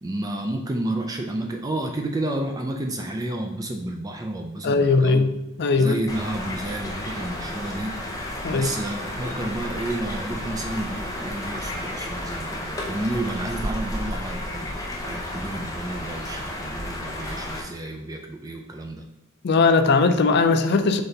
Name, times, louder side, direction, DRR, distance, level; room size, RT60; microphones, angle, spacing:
voice 1, 0.0-5.3 5.8-14.7 15.0-19.0, right 1 dB, 20° right, 3 dB, 0.3 m, -31 dB
voice 2, 4.6-5.3 5.6-6.0 8.4-8.7 19.4-21.0, left 4 dB, 55° left, 8 dB, 0.4 m, -19 dB
sound 1, 6.1-17.6, left 1 dB, 15° left, 0.7 m, -32 dB
4.1 x 3.3 x 3.9 m, 1.0 s
head